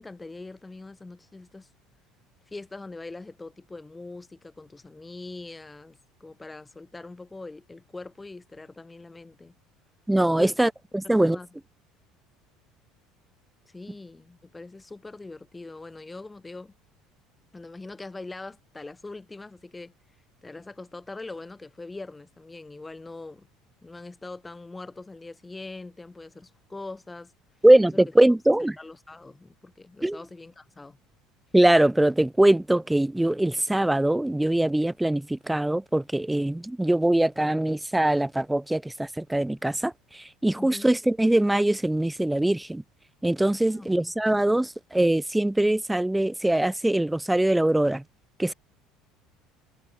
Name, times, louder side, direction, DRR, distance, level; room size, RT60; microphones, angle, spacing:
voice 1, 0.0-1.7 2.5-9.5 10.4-10.6 11.0-11.5 13.6-16.7 17.5-19.9 20.4-23.5 23.8-27.3 27.9-28.0 28.8-31.0 40.6-40.9 43.7-44.1, left 3 dB, 10° left, 6.4 m, -42 dB
voice 2, 10.1-11.4 27.6-28.7 30.0-30.2 31.5-42.8 43.2-48.0 48.4-48.5, right 1 dB, 5° right, 0.6 m, -22 dB
cardioid pair, 135°, 0 cm